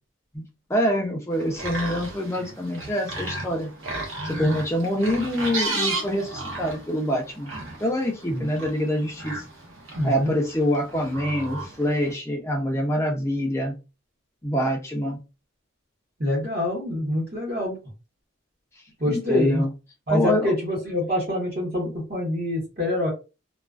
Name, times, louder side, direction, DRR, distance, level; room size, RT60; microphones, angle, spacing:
voice 1, 0.7-3.7 4.2-7.5 7.8-9.4 10.0-13.7 14.4-15.2 19.1-19.7 20.1-20.5, equal, 15° left, 1 dB, 0.4 m, -25 dB
sound 1, 1.3-12.1, right 2 dB, 70° right, 0.8 m, -34 dB
voice 2, 9.9-10.3 16.2-17.8 19.0-19.6 20.1-23.1, left 1 dB, 45° right, -6 dB, 1.0 m, -25 dB
2.3 x 2.3 x 2.3 m, 0.29 s
head